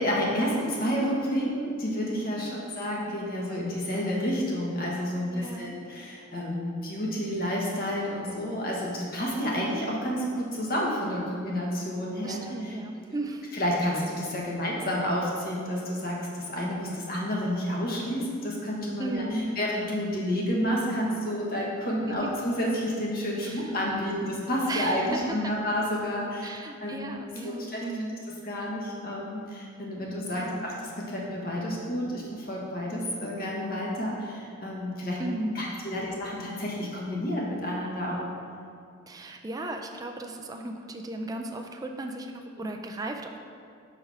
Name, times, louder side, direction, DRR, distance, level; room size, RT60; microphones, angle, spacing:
voice 1, 0.0-12.7 13.5-26.5 26.8-27.0 27.4-27.8 28.4-35.2 35.5-38.2 42.6-42.7, equal, 45° left, -3 dB, 1.2 m, -30 dB
voice 2, 2.4-2.8 5.3-5.8 12.2-13.5 19.0-19.6 22.2-22.3 23.4-23.7 24.7-25.5 26.4-28.2 30.3-30.6 35.2-35.7 39.1-43.4, right 2 dB, 15° right, 3 dB, 0.4 m, -35 dB
5.7 x 4.8 x 4.7 m, 2.4 s
head